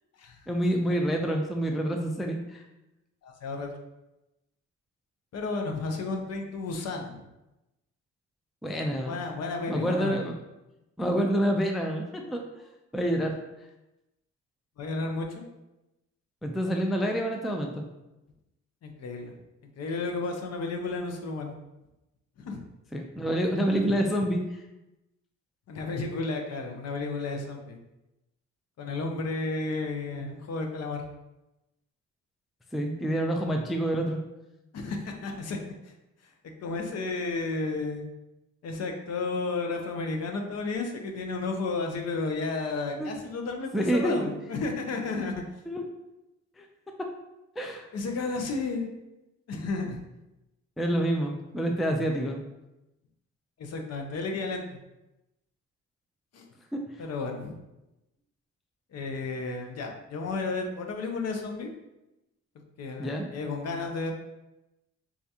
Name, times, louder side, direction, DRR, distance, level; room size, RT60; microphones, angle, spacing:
voice 1, 0.5-2.6 8.6-9.2 9.7-10.3 11.0-12.6 12.9-13.4 16.4-17.8 22.9-24.4 32.7-34.2 43.0-43.1 43.7-44.3 45.7-45.9 46.6-46.7 47.0-47.1 47.6-47.9 50.8-52.4 56.7-56.8 63.0-63.3, equal, ahead, 3 dB, 0.3 m, -27 dB
voice 2, 3.2-3.7 5.3-7.2 9.0-10.3 14.8-15.4 18.8-19.3 19.8-21.5 22.4-22.6 25.7-27.8 28.8-31.0 34.7-35.6 36.6-38.0 38.6-45.3 47.9-48.9 49.5-50.0 52.2-52.3 53.6-54.6 56.3-56.4 57.0-57.6 58.9-61.7 62.8-64.1, left 3 dB, 55° left, 3 dB, 0.6 m, -32 dB
4.3 x 2.4 x 2.7 m, 0.96 s
cardioid pair, 90°, 30 cm